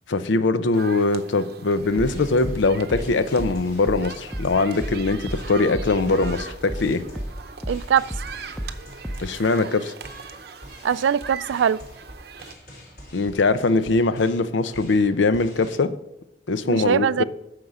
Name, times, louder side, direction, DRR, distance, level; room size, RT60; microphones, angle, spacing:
voice 1, 0.1-7.0 9.2-9.9 13.1-15.9 16.5-17.2, left 3 dB, 90° left, 0.6 m, -22 dB
sound 1, 0.7-12.5, right 5 dB, 60° right, 0.7 m, -41 dB
sound 2, 1.8-15.8, equal, 55° left, 3.8 m, -46 dB
sound 3, 2.0-6.9 7.2-9.4, equal, ahead, 0.6 m, -32 dB
voice 2, 7.7-8.1 10.8-11.8 16.7-17.2, right 8 dB, 90° right, 0.3 m, -22 dB
9.6 x 6.6 x 4.9 m
head